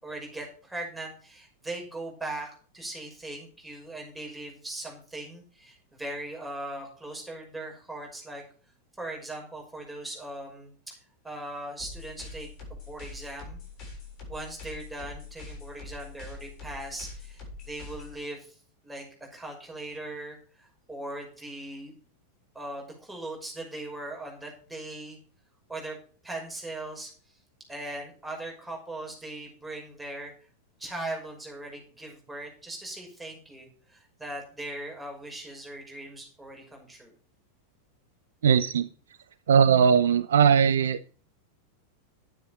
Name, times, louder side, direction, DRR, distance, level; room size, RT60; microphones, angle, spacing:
voice 1, 0.0-8.4 9.0-11.0 11.2-13.6 14.3-18.6 18.8-21.9 22.5-25.2 25.7-26.0 26.2-27.4 27.7-30.3 30.8-37.1, right 2 dB, 5° right, 0 dB, 5.9 m, -39 dB
sound 1, 11.8-18.2, left 3 dB, 40° left, 7.6 m, -43 dB
voice 2, 38.4-38.9 39.5-41.0, right 7 dB, 65° right, 15 dB, 0.6 m, -20 dB
12.0 x 9.3 x 5.3 m, 0.41 s
figure-of-eight pair, 90°, 0 cm